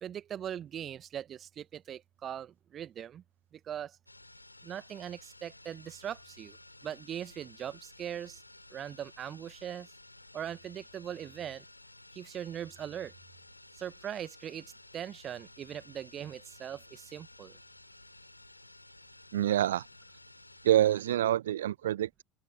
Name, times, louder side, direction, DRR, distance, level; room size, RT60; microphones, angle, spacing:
voice 1, 0.0-3.2 3.7-3.9 4.6-6.6 6.8-8.4 8.7-9.9 10.3-11.6 12.1-13.1 13.8-14.7 14.9-17.5, right 9 dB, 40° right, 1.3 m, -40 dB
sound 1, 4.1-21.1, left 2 dB, 90° left, 4.4 m, -55 dB
voice 2, 19.3-19.9 20.6-22.2, right 12 dB, 70° right, 0.4 m, -26 dB
open air
figure-of-eight pair, 65°, 0 cm